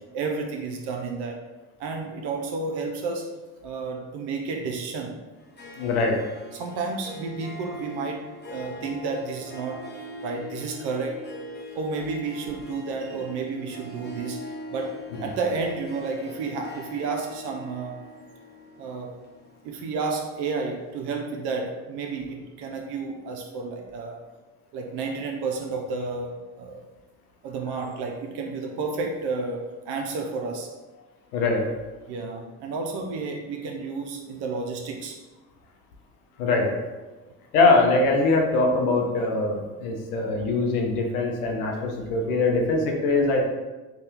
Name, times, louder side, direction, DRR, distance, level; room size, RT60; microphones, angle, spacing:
voice 1, 0.1-1.4 1.8-3.3 3.6-5.2 6.5-11.3 11.7-18.0 18.8-19.1 19.6-24.2 24.7-26.9 27.4-30.7 32.1-35.2, right 4 dB, 65° right, 2 dB, 0.5 m, -31 dB
Harp, 5.4-20.7, left 1 dB, 25° left, 0.6 m, -42 dB
voice 2, 5.8-6.2 31.3-31.6 36.4-36.7 37.5-43.4, left 3 dB, 85° left, 1 dB, 0.6 m, -22 dB
2.7 x 2.3 x 3.4 m, 1.2 s
hypercardioid pair, 50°, 44 cm